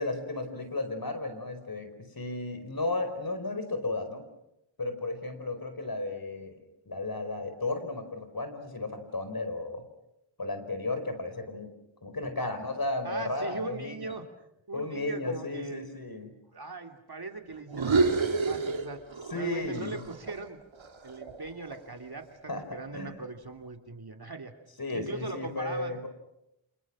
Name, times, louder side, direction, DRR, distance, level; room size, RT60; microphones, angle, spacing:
voice 1, 0.0-4.2 4.8-9.8 10.4-11.7 12.0-14.2 14.7-16.4 19.3-20.0 22.5-23.2 24.8-26.1, left 2 dB, 45° left, 8 dB, 4.9 m, -34 dB
voice 2, 13.0-14.3 14.7-15.9 16.5-19.0 19.3-20.6 21.0-24.5 24.9-26.0, right 3 dB, 50° right, 5 dB, 3.0 m, -40 dB
sound 1, 17.7-19.4 19.7-22.0, right 4 dB, 75° right, 2.6 m, -29 dB
29.5 x 27.5 x 6.2 m, 0.85 s
wide cardioid pair, 75°, 48 cm